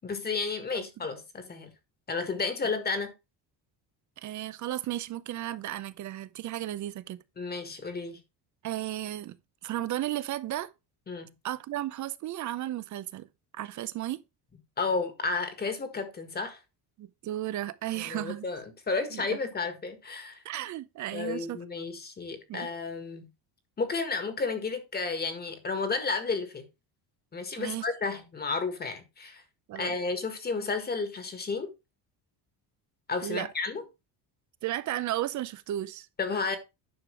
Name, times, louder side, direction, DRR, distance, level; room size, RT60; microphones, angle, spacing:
voice 1, 0.0-1.7 2.1-3.1 7.4-8.2 11.1-11.3 14.8-16.6 18.0-20.4 21.1-23.3 23.8-26.7 27.3-29.4 29.7-31.7 33.1-33.8 36.2-36.6, left 4 dB, 20° left, 1.7 m, -32 dB
voice 2, 4.2-7.2 8.6-9.4 9.6-10.7 11.4-13.3 13.5-14.2 17.0-18.5 19.1-19.4 20.4-21.6 22.5-22.7 27.6-27.9 29.7-29.9 33.2-33.5 34.6-36.1, right 13 dB, 45° right, 0.7 m, -34 dB
10.5 x 6.7 x 3.3 m
cardioid pair, 165°, 42 cm